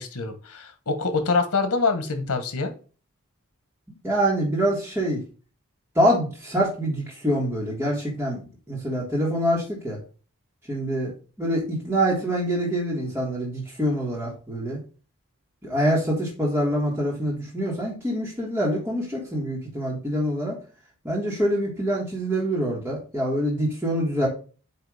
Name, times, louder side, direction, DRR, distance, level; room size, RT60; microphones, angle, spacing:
voice 1, 0.0-2.7, left 4 dB, 90° left, 8 dB, 1.3 m, -25 dB
voice 2, 4.0-5.2 5.9-10.0 10.7-11.1 11.4-14.8 15.6-20.6 21.0-24.3, equal, 10° right, -6 dB, 1.6 m, -25 dB
8.6 x 2.9 x 4.8 m, 0.36 s
head